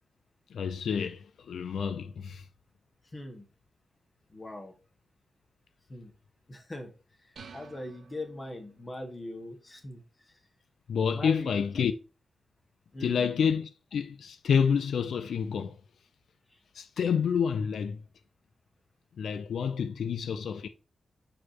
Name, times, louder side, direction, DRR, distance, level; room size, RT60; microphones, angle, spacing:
voice 1, 0.5-2.4 10.9-11.9 13.0-15.8 16.7-18.0 19.2-20.7, left 7 dB, 85° left, 0.5 m, -29 dB
voice 2, 3.1-3.5 4.3-4.7 5.9-6.1 6.5-6.9 7.2-10.4 11.1-11.5 12.9-13.3 16.5-16.6, left 1 dB, 25° left, 1.4 m, -41 dB
sound 1, 7.4-9.0, right 5 dB, 65° right, 1.0 m, -51 dB
6.5 x 4.9 x 2.9 m
wide cardioid pair, 155°, 0 cm